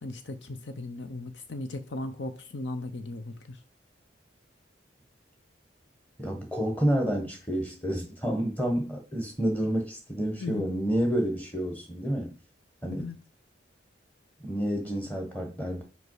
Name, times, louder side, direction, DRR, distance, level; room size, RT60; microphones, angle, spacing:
voice 1, 0.0-3.6 10.4-10.7 12.9-13.2, left 2 dB, 70° left, 0.7 m, -37 dB
voice 2, 6.2-12.3 12.8-13.1 14.4-15.8, right 1 dB, 10° left, 1.3 m, -29 dB
5.3 x 4.8 x 4.8 m
head